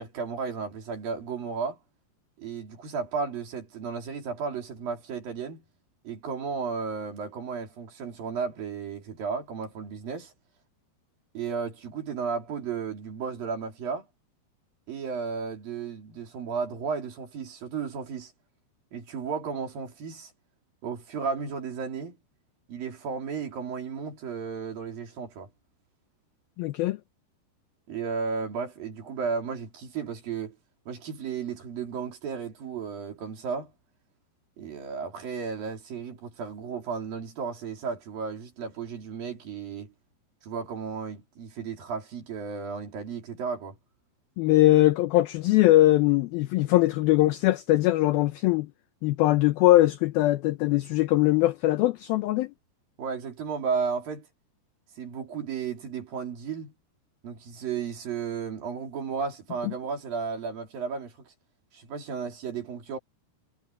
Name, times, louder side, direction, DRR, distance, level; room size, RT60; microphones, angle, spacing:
voice 1, 0.0-1.8 2.4-5.6 6.0-10.3 11.3-14.1 14.9-18.3 18.9-20.3 20.8-22.2 22.7-25.5 27.9-30.6 30.9-33.7 34.6-39.9 40.4-43.8 53.0-54.3 55.0-56.7 57.2-61.3 61.7-63.0, right 5 dB, 55° right, 5.0 m, -34 dB
voice 2, 26.6-27.0 44.4-48.7 49.0-52.5, left 16 dB, 80° left, 2.2 m, -21 dB
omnidirectional pair, 5.0 m